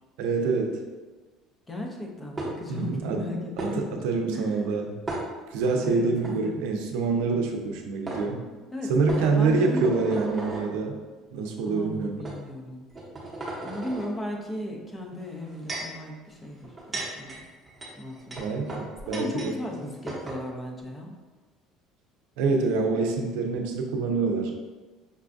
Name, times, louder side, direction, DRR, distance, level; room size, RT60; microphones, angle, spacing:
voice 1, 0.2-0.8 2.7-3.2 3.6-5.0 5.5-8.4 8.9-11.0 11.3-12.2 18.4-19.5 22.4-24.5, right 4 dB, 85° right, 3 dB, 0.5 m, -26 dB
voice 2, 1.7-4.7 5.7-6.7 8.7-10.2 11.7-12.9 13.6-17.4 17.9-18.6 19.0-21.1, left 1 dB, 20° left, 1 dB, 0.6 m, -36 dB
sound 1, 2.4-2.8 3.6-3.7 5.1-5.7 6.2-6.3 7.6-7.7 8.1-8.2 9.1-10.7 11.5-11.6 12.2-12.4 12.9-14.1 15.2-16.0 16.6-19.5 19.8-19.9 20.1-20.4, right 2 dB, 15° right, 0.9 m, -35 dB
5.3 x 2.3 x 2.5 m, 1.3 s
cardioid pair, 125°, 0 cm